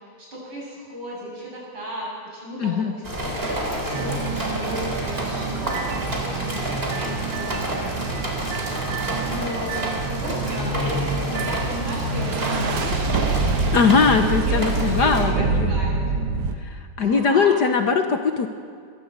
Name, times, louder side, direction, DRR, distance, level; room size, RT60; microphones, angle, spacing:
voice 1, 0.2-8.2 9.2-11.0 11.3-13.7 14.4-16.0 17.0-17.6, equal, 65° right, -4 dB, 9.0 m, -35 dB
voice 2, 2.6-2.9 13.7-15.7 16.6-18.5, left 5 dB, 55° left, 6 dB, 1.4 m, -20 dB
sound 1, 3.0-15.3, equal, 25° right, 3.9 m, -28 dB
sound 2, 3.9-16.5, right 4 dB, 85° right, 2.3 m, -27 dB
22.0 x 15.5 x 8.1 m, 2.1 s
omnidirectional pair, 2.4 m